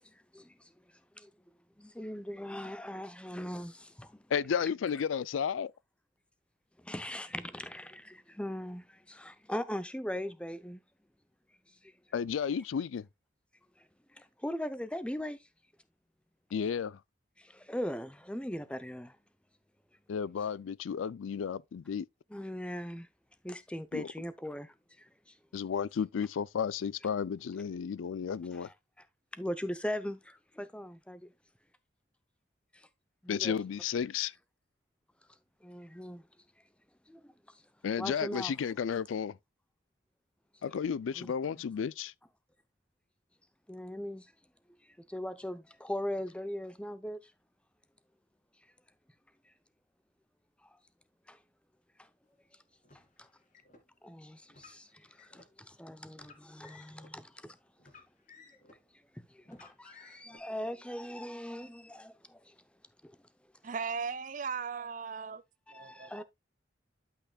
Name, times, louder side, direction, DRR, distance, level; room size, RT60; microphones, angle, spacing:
voice 1, 1.8-4.1 6.8-10.8 14.4-15.4 17.5-19.1 22.3-23.1 23.4-24.7 28.5-28.7 29.4-31.2 33.2-33.5 35.6-36.2 37.1-37.2 38.0-38.5 41.2-41.3 43.7-44.2 45.1-47.2 51.3-51.4 54.0-54.9 55.3-57.5 59.5-62.1 65.7-66.2, equal, 5° left, 0.6 m, -39 dB
voice 2, 4.3-5.7 12.1-13.1 16.5-17.0 20.1-22.1 23.9-24.1 25.5-28.7 33.3-34.3 37.8-39.4 40.6-42.1, left 7 dB, 90° left, 0.4 m, -33 dB
Car, 52.8-53.8 54.5-55.5 56.1-57.1 57.8-58.9 59.4-60.4, left 4 dB, 40° left, 2.2 m, -57 dB
voice 3, 63.6-65.4 65.7-66.2, right 5 dB, 40° right, 0.5 m, -37 dB
12.0 x 5.7 x 2.3 m
head